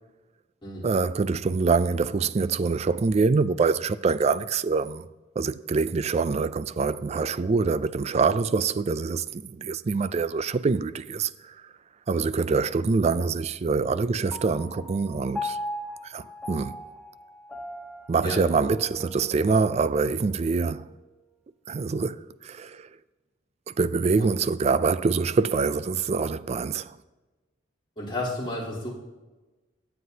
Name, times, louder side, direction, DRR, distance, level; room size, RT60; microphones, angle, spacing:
voice 1, 0.8-5.1 5.4-11.5 12.1-15.6 16.0-16.8 18.1-20.9 21.7-22.9 23.8-26.9, right 4 dB, 35° right, 0.3 m, -25 dB
Piano, 14.3-21.0, left 1 dB, ahead, 0.9 m, -39 dB
voice 2, 28.0-28.9, left 1 dB, 25° left, 3.4 m, -32 dB
20.5 x 7.8 x 2.8 m
head